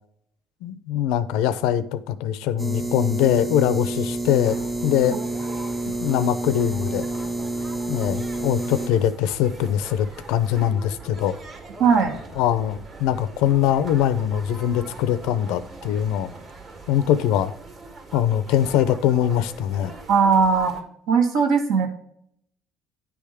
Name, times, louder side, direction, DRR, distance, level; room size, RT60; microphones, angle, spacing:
voice 1, 0.6-5.2 6.0-7.1 7.9-11.3 12.4-16.3 16.9-17.5 18.1-19.9, left 10 dB, 90° left, 14 dB, 0.5 m, -22 dB
sound 1, 2.6-8.9, right 2 dB, 10° right, 0.7 m, -29 dB
sound 2, 4.4-20.8, right 2 dB, 40° right, 1.6 m, -41 dB
voice 2, 11.8-12.2 20.1-20.8 21.1-21.9, right 5 dB, 75° right, 5 dB, 1.5 m, -18 dB
10.0 x 3.5 x 4.9 m, 0.69 s
cardioid pair, 130°, 0 cm